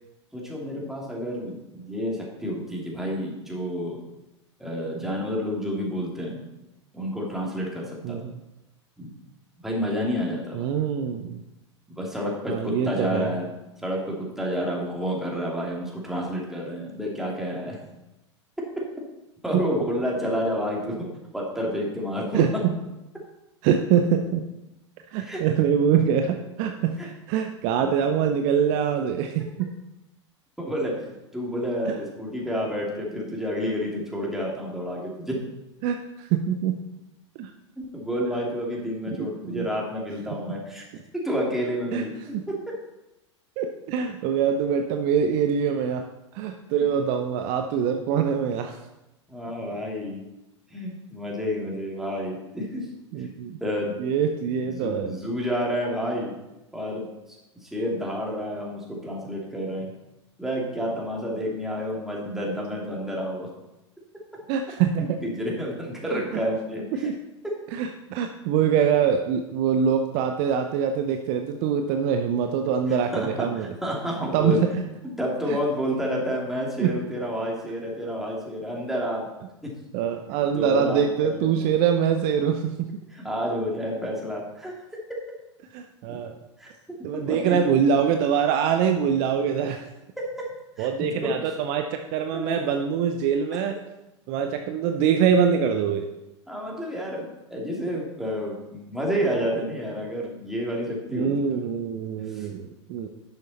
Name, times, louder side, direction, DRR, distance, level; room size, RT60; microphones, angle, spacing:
voice 1, 0.3-4.0 4.6-6.4 6.9-8.2 9.0-9.1 9.6-10.7 11.9-13.5 13.8-17.8 19.4-22.4 25.2-25.4 27.0-27.1 30.6-31.0 31.3-35.4 37.8-40.8 41.2-42.1 42.5-42.7 49.3-50.2 50.7-52.9 53.2-53.3 53.6-53.9 54.6-56.3 56.7-57.4 57.6-59.9 60.4-63.5 65.2-67.1 67.4-67.5 72.9-74.6 75.2-79.3 79.6-79.7 80.5-81.7 83.1-84.7 86.6-87.6 90.2-90.5 90.8-91.3 92.3-92.9 93.5-93.6 96.5-101.3 102.3-102.5, equal, ahead, -3 dB, 2.7 m, -30 dB
voice 2, 8.0-8.4 10.5-11.4 12.5-13.3 22.3-22.8 23.6-24.5 25.1-29.7 31.9-32.0 35.8-36.8 37.4-37.5 39.2-39.7 41.9-42.0 43.6-46.1 46.3-48.8 53.1-53.6 54.0-55.1 64.5-65.2 66.1-66.4 66.9-67.1 67.7-73.7 74.3-74.7 75.5-75.6 76.8-76.9 79.9-82.9 85.7-86.3 87.0-89.8 90.8-93.8 94.3-96.1 101.1-103.1, right 7 dB, 45° right, 6 dB, 0.7 m, -24 dB
11.0 x 6.6 x 4.2 m, 0.95 s
figure-of-eight pair, 90°, 15 cm